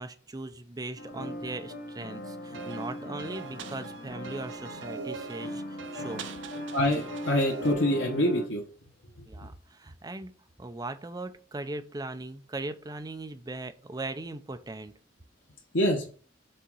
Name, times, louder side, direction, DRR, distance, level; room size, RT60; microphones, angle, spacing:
voice 1, 0.0-6.3 9.2-14.9, right 2 dB, 20° right, 9 dB, 0.6 m, -39 dB
sound 1, 1.0-8.5, left 1 dB, 60° left, 1.1 m, -39 dB
sound 2, 2.5-7.7, right 6 dB, 75° right, 0.6 m, -42 dB
voice 2, 6.7-8.6 9.2-9.3 15.7-16.1, equal, 85° left, -1 dB, 1.2 m, -26 dB
5.5 x 3.8 x 5.5 m, 0.41 s
head